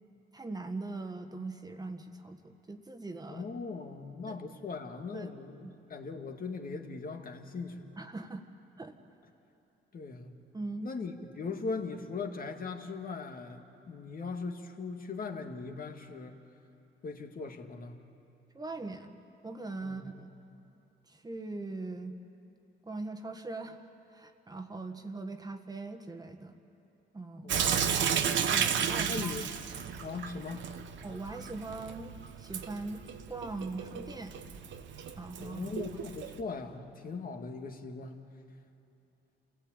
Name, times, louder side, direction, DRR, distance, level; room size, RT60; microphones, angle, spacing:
voice 1, 0.3-3.5 4.3-4.4 5.1-5.3 5.6-5.7 8.0-8.4 8.8-9.0 10.5-10.9 18.5-19.1 19.4-20.3 21.1-22.2 22.8-26.6 27.1-27.5 28.5-29.4 31.0-33.0 33.3-34.3 35.2-35.8, right 3 dB, 20° right, 6 dB, 1.6 m, -41 dB
voice 2, 3.3-7.9 9.9-10.3 10.8-16.4 17.0-18.0 19.8-20.1 27.4-28.0 29.1-29.5 30.0-30.7 35.4-38.2, left 4 dB, 45° left, 4 dB, 2.1 m, -39 dB
Sink (filling or washing) / Drip, 27.5-36.4, right 7 dB, 70° right, 1.2 m, -33 dB
28.0 x 16.5 x 9.0 m, 2.8 s
cardioid pair, 90°, 20 cm